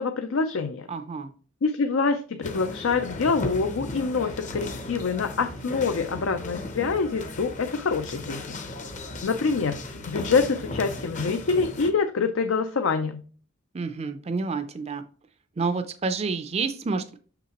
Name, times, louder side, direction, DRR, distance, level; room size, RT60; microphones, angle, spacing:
voice 1, 0.0-0.9 1.6-8.6 9.2-13.2, left 4 dB, 75° left, 7 dB, 0.5 m, -26 dB
voice 2, 0.9-1.3 13.7-15.0 15.6-17.2, right 4 dB, 30° right, 9 dB, 0.4 m, -29 dB
sound 1, 2.4-11.9, left 2 dB, 40° left, 0.7 m, -36 dB
sound 2, 3.6-11.0, equal, 85° right, 0.5 m, -47 dB
6.5 x 5.9 x 2.9 m, 0.40 s
head